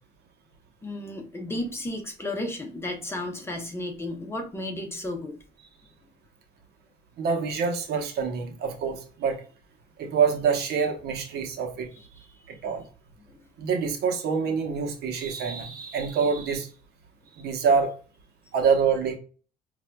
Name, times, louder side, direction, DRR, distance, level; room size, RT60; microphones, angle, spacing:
voice 1, 0.8-5.3 12.0-12.1 13.3-13.4, left 1 dB, 15° left, 3 dB, 1.0 m, -33 dB
voice 2, 7.2-9.4 10.0-11.9 12.5-12.8 13.6-16.7 17.4-17.9 18.5-19.2, right 6 dB, 70° right, 4 dB, 0.9 m, -26 dB
5.3 x 2.5 x 2.2 m, 0.37 s
cardioid pair, 110°, 17 cm